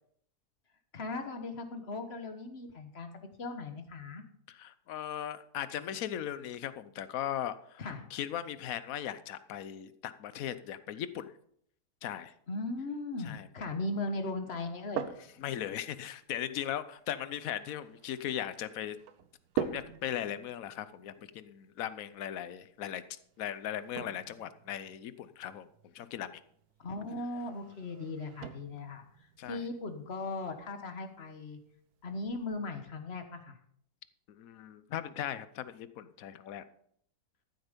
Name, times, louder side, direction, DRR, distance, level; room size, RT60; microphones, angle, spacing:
voice 1, 0.9-3.1 3.4-4.2 7.8-8.1 12.5-15.0 26.8-29.0 29.4-31.6 32.0-33.5, left 2 dB, 40° left, 7 dB, 1.5 m, -38 dB
voice 2, 4.5-11.3 12.0-12.3 13.2-13.5 15.4-19.0 19.5-23.0 23.4-26.4 29.4-29.6 34.3-36.6, left 10 dB, 65° left, 14 dB, 1.1 m, -38 dB
sound 1, 14.5-32.6, right 8 dB, 70° right, 1.3 m, -45 dB
14.0 x 8.1 x 5.2 m, 0.67 s
omnidirectional pair, 1.7 m